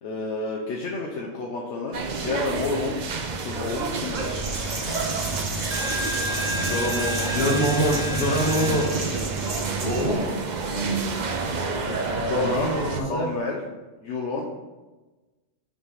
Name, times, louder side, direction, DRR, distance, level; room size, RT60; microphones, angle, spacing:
voice 1, 0.0-3.0 3.4-4.4 6.7-7.3 10.0-10.3 10.7-11.0 12.3-13.6 14.0-14.5, left 3 dB, 75° left, -2 dB, 1.1 m, -30 dB
sound 1, 1.9-13.0, right 4 dB, 45° right, 0.6 m, -30 dB
Coin (dropping), 4.1-10.2, right 2 dB, 65° right, 1.4 m, -29 dB
voice 2, 7.3-9.0 9.8-10.3 11.8-13.3, equal, 55° left, -1 dB, 1.6 m, -25 dB
5.9 x 3.9 x 5.7 m, 1.2 s
omnidirectional pair, 1.2 m